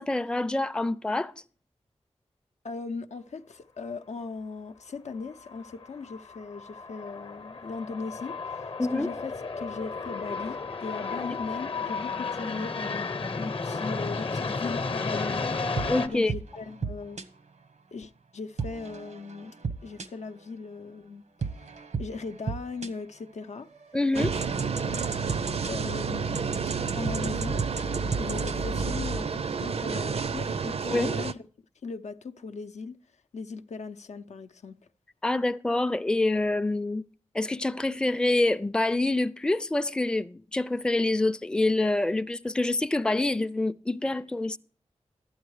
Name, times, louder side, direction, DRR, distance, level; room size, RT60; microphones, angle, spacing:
voice 1, 0.0-1.3 8.8-9.1 15.9-16.3 23.9-24.3 30.9-31.1 35.2-37.0 37.3-44.6, left 2 dB, 5° left, 0.4 m, -26 dB
voice 2, 2.6-15.6 16.1-17.2 17.9-19.5 19.8-21.5 22.0-23.7 24.1-24.4 24.8-25.0 25.7-26.6 26.9-27.6 28.2-31.4 31.8-33.0 33.3-34.8, left 4 dB, 80° left, 0.6 m, -38 dB
sound 1, 5.4-16.1, left 4 dB, 50° left, 0.8 m, -33 dB
sound 2, 15.8-17.2 18.6-20.4 21.4-22.9 23.6-29.2, right 4 dB, 85° right, 0.9 m, -34 dB
sound 3, 24.1-31.3, right 5 dB, 60° right, 0.4 m, -31 dB
12.0 x 8.8 x 4.8 m
wide cardioid pair, 65°, 12 cm